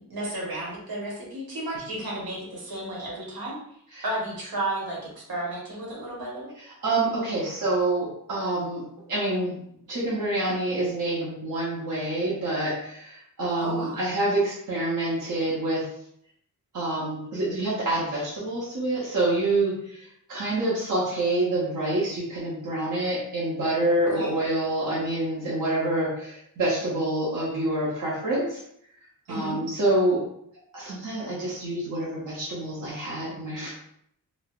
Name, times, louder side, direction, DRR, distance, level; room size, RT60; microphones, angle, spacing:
voice 1, 0.1-3.6 4.0-5.0 5.3-6.5 13.6-14.0 24.1-24.3 29.3-29.6, right 1 dB, 80° right, -5 dB, 1.1 m, -32 dB
voice 2, 6.8-8.8 9.1-9.6 9.9-15.9 16.7-20.0 20.3-28.6 29.3-30.2 30.7-33.7, right 2 dB, 60° right, -8 dB, 0.8 m, -27 dB
3.1 x 2.0 x 2.3 m, 0.71 s
wide cardioid pair, 130°, 36 cm